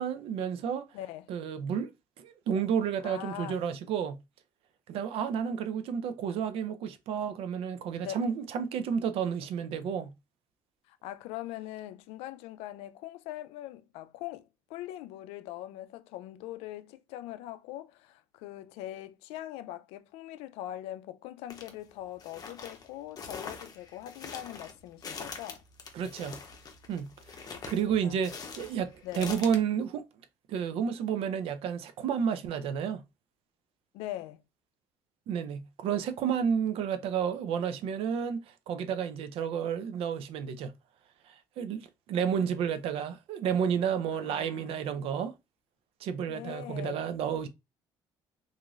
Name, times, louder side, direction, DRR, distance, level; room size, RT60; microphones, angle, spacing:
voice 1, 0.0-0.9 1.3-1.9 2.2-4.2 4.9-10.1 25.9-26.4 26.9-27.1 27.7-30.0 30.5-33.0 35.3-40.7 41.3-45.3 46.0-47.5, right 7 dB, 70° right, 0.4 m, -31 dB
voice 2, 0.9-1.3 3.0-3.6 8.0-8.2 10.9-25.6 27.5-28.2 29.0-29.3 33.9-34.4 44.2-44.8 46.3-47.0, left 14 dB, 90° left, 0.4 m, -42 dB
sound 1, 21.5-21.7 22.2-29.6, left 5 dB, 40° left, 0.7 m, -43 dB
3.0 x 2.5 x 2.4 m
cardioid pair, 100°, 10 cm